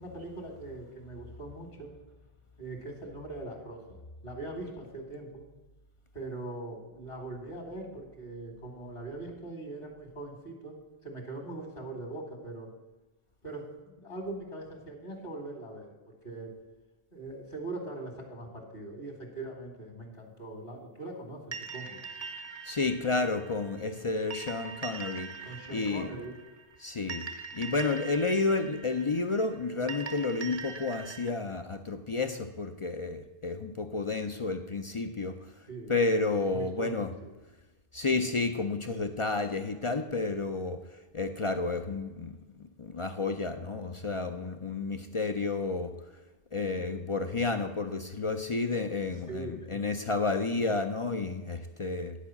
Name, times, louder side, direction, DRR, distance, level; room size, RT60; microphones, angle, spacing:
voice 1, 0.0-1.9 2.6-5.4 6.1-10.8 11.0-12.7 13.4-16.5 17.1-21.4 21.7-22.0 25.4-26.3 35.7-35.9 36.5-37.3 49.3-49.7, right 2 dB, 60° left, 3 dB, 2.0 m, -41 dB
sound 1, 21.5-31.3, right 5 dB, 40° right, 0.8 m, -43 dB
voice 2, 22.6-25.3 25.7-26.1 26.8-27.2 27.5-35.4 35.9-37.1 37.9-40.8 41.1-45.9 46.5-52.2, left 3 dB, 40° left, 7 dB, 0.5 m, -31 dB
10.5 x 4.7 x 7.1 m, 1.2 s
omnidirectional pair, 1.1 m